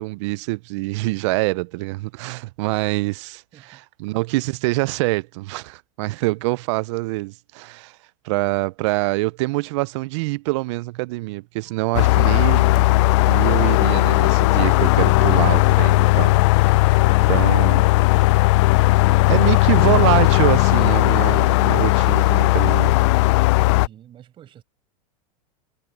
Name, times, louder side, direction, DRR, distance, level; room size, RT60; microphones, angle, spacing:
voice 1, 0.0-8.0 8.2-13.0 13.3-16.9 17.3-17.8 19.3-22.9, right 22 dB, 55° right, 0.4 m, -25 dB
Wind instrument woodwind instrument, 11.7-21.6, equal, ahead, 2.8 m, -52 dB
sound 1, 11.9-23.9, left 20 dB, 55° left, 0.4 m, -16 dB
voice 2, 19.0-19.9 23.6-24.6, right 11 dB, 25° right, 5.6 m, -45 dB
supercardioid pair, 150°, 18 cm